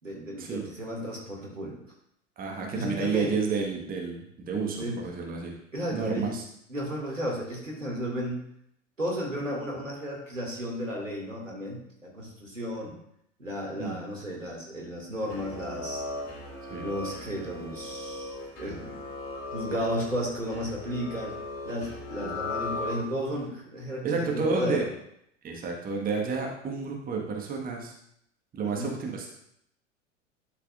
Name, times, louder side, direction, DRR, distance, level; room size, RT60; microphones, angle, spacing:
voice 1, 0.0-1.8 2.7-3.3 4.7-5.0 5.7-6.4 6.7-8.5 9.0-12.9 13.4-16.0 16.8-18.9 19.5-21.4 21.6-24.8 28.6-28.9, equal, 85° right, -1 dB, 2.3 m, -33 dB
voice 2, 2.4-5.6 5.9-6.4 13.8-14.0 16.7-16.9 22.2-22.3 24.0-24.9 25.4-27.9 28.5-29.3, right 4 dB, 25° right, 0 dB, 1.5 m, -30 dB
sound 1, 15.2-23.4, left 2 dB, 35° left, 3.1 m, -38 dB
11.0 x 6.6 x 2.5 m, 0.74 s
figure-of-eight pair, 85°, 37 cm